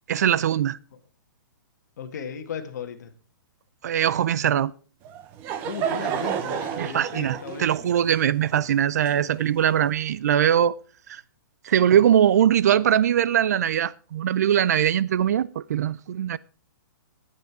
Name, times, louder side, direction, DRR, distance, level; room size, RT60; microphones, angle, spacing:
voice 1, 0.1-0.8 3.8-4.7 6.8-10.7 11.1-11.2 11.6-16.4, right 10 dB, 50° right, 0.4 m, -21 dB
voice 2, 2.0-3.1 5.6-7.9, left 7 dB, 50° left, 1.8 m, -36 dB
Laughter / Crowd, 5.0-9.7, right 8 dB, 20° right, 0.7 m, -31 dB
12.0 x 9.6 x 4.7 m
hypercardioid pair, 170°, 11 cm